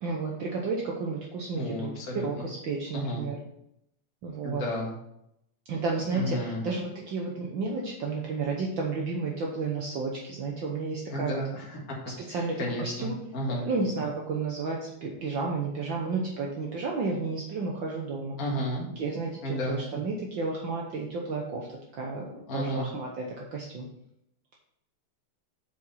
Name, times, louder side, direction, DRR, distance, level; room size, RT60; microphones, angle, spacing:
voice 1, 0.0-1.9 2.2-3.4 4.2-4.6 5.7-11.4 12.1-13.2 13.5-18.4 19.0-23.9, right 4 dB, 80° right, -1 dB, 1.0 m, -32 dB
voice 2, 1.6-2.5 2.9-3.3 4.4-4.9 6.1-6.6 11.1-11.8 12.3-13.7 18.4-18.9 19.4-19.8 22.5-22.9, equal, 35° left, -2 dB, 1.8 m, -32 dB
6.9 x 4.8 x 5.5 m, 0.78 s
omnidirectional pair, 3.4 m